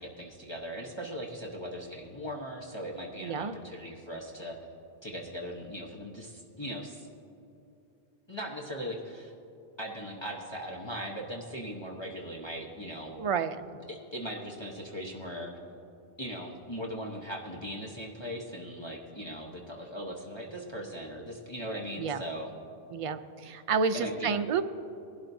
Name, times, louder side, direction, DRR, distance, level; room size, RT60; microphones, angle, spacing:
voice 1, 0.0-4.6 5.0-7.1 8.3-9.3 9.8-13.2 13.9-15.5 16.2-22.5 23.9-24.4, equal, 25° left, -3 dB, 1.0 m, -39 dB
voice 2, 3.2-3.6 13.2-13.7 22.0-22.2 22.9-24.6, right 5 dB, 50° right, 9 dB, 0.4 m, -30 dB
20.0 x 12.0 x 2.7 m, 2.7 s
omnidirectional pair, 1.1 m